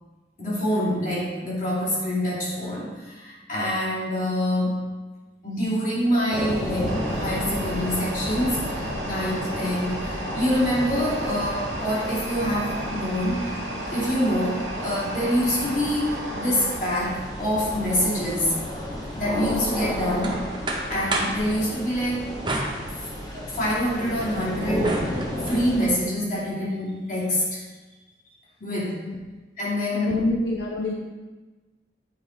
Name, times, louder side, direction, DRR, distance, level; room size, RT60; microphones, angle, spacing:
voice 1, 0.4-4.9 5.4-13.6 13.9-18.5 19.1-20.5 20.9-22.4 23.3-27.6 28.6-29.0 29.6-30.2, equal, 45° left, -7 dB, 2.6 m, -26 dB
sound 1, 6.3-25.9, left 1 dB, 20° left, 1.4 m, -32 dB
sound 2, 6.9-16.8, right 1 dB, 85° right, 1.3 m, -34 dB
sound 3, 19.7-21.5 22.4-23.5 23.9-25.6, right 2 dB, 25° right, 0.8 m, -32 dB
voice 2, 28.6-29.3 29.9-30.9, left 2 dB, 70° left, -1 dB, 0.6 m, -27 dB
8.8 x 4.6 x 4.0 m, 1.3 s
head